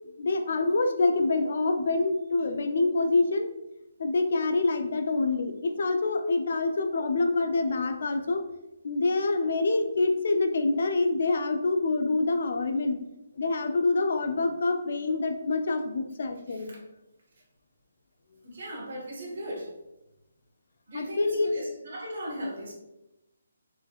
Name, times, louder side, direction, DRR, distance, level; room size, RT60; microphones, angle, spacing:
voice 1, 0.2-3.5 4.0-8.4 8.8-13.0 13.4-16.7 20.9-21.5, left 3 dB, 55° left, 6 dB, 0.4 m, -26 dB
voice 2, 16.5-16.8 18.4-19.7 20.9-22.7, right 1 dB, 55° right, -3 dB, 1.2 m, -38 dB
4.7 x 3.1 x 2.3 m, 0.93 s
hypercardioid pair, 170°, 0 cm